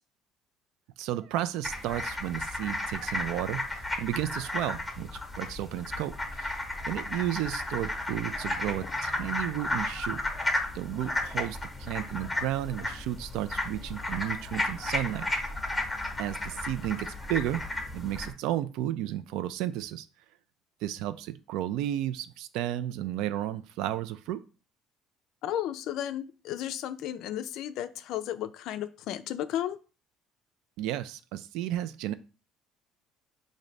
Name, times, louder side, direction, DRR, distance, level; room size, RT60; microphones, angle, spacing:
voice 1, 1.0-5.1 5.4-6.6 6.9-10.2 10.7-15.3 16.2-17.6 17.9-20.1 20.8-24.4 30.8-32.1, right 13 dB, 80° right, 14 dB, 0.3 m, -33 dB
sound 1, 1.6-18.3, left 1 dB, 5° left, 0.8 m, -34 dB
voice 2, 25.4-29.8, left 11 dB, 65° left, 11 dB, 0.3 m, -34 dB
3.9 x 2.6 x 3.2 m, 0.34 s
cardioid pair, 135°, 0 cm